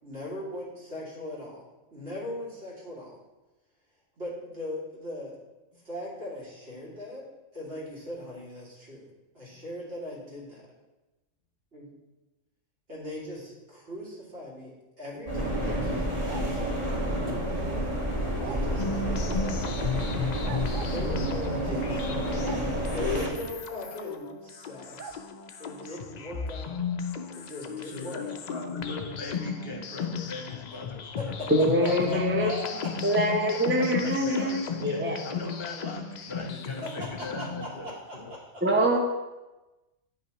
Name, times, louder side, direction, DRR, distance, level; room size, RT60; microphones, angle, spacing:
voice 1, 0.0-3.1 4.2-5.3 5.8-7.2 7.5-10.6 11.7-11.9 12.9-13.5 13.9-17.8 18.4-20.1 20.8-22.6 22.9-25.2 25.6-26.8 27.3-28.4 31.2-31.5 31.8-32.9 33.3-34.1 36.8-36.9 37.2-38.9, left 1 dB, 60° right, -6 dB, 2.6 m, -40 dB
sound 1, 15.3-23.3, equal, 30° right, 1.7 m, -29 dB
sound 2, 16.3-16.8 18.4-18.7 20.4-21.0 22.4-22.7 25.0-25.2, right 6 dB, 75° right, 0.4 m, -41 dB
sound 3, 18.8-37.6, left 5 dB, 70° left, 0.4 m, -35 dB
voice 2, 27.8-33.0 34.0-38.3, left 3 dB, 55° left, 2 dB, 0.9 m, -40 dB
voice 3, 31.5-32.5 33.0-35.2 38.6-39.0, equal, 15° right, 0 dB, 0.5 m, -24 dB
9.0 x 5.6 x 3.0 m, 1.1 s
omnidirectional pair, 1.3 m